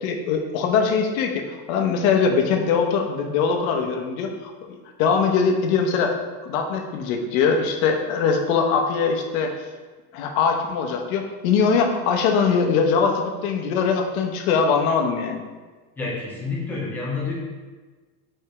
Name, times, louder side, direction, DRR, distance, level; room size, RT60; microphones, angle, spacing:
voice 1, 0.0-4.5 5.0-6.1 6.4-9.5 10.1-15.4, left 5 dB, 65° left, 4 dB, 0.9 m, -22 dB
voice 2, 16.0-17.3, left 4 dB, 5° left, -6 dB, 0.3 m, -28 dB
4.9 x 4.4 x 4.7 m, 1.4 s
cardioid pair, 180°, 45 cm